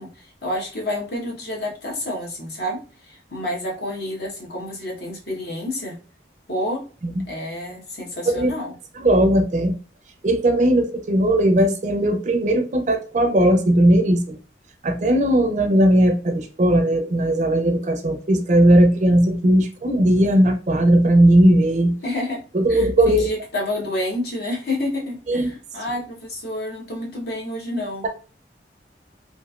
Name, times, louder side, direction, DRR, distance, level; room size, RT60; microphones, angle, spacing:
voice 1, 0.0-6.0 6.5-6.8 7.3-8.7 22.0-22.4 22.7-28.1, left 1 dB, 60° left, 0.9 m, -29 dB
voice 2, 9.0-9.7 10.2-14.4 14.8-21.9 22.5-23.3 25.3-25.5, right 1 dB, 40° right, 0.4 m, -17 dB
3.0 x 2.4 x 2.3 m
head